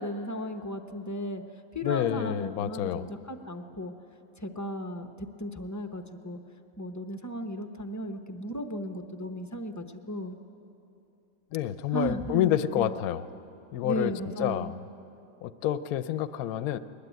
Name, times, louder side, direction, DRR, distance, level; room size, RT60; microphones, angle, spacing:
voice 1, 0.0-1.4 1.7-3.9 4.4-5.1 5.4-6.4 6.8-10.4 11.9-13.0 13.8-14.7, equal, 20° left, 6 dB, 0.5 m, -35 dB
voice 2, 1.8-3.0 11.5-13.2 13.7-14.1 14.4-14.7 15.4-16.8, left 11 dB, 65° left, 13 dB, 1.0 m, -28 dB
21.5 x 20.0 x 9.3 m, 2.8 s
omnidirectional pair, 1.9 m